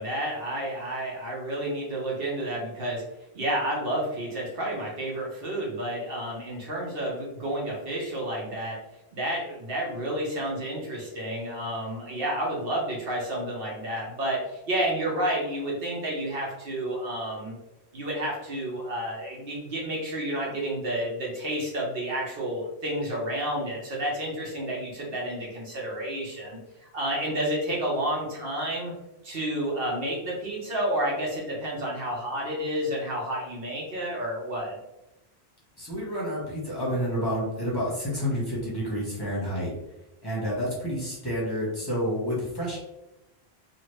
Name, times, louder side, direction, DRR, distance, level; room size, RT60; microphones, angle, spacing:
voice 1, 0.0-3.0 3.3-8.8 9.1-17.5 17.9-28.9 29.2-34.8, right 1 dB, 65° right, -3 dB, 1.0 m, -30 dB
voice 2, 35.8-39.7 40.2-42.8, equal, 25° left, -6 dB, 1.0 m, -29 dB
2.9 x 2.5 x 3.1 m, 0.93 s
omnidirectional pair, 1.1 m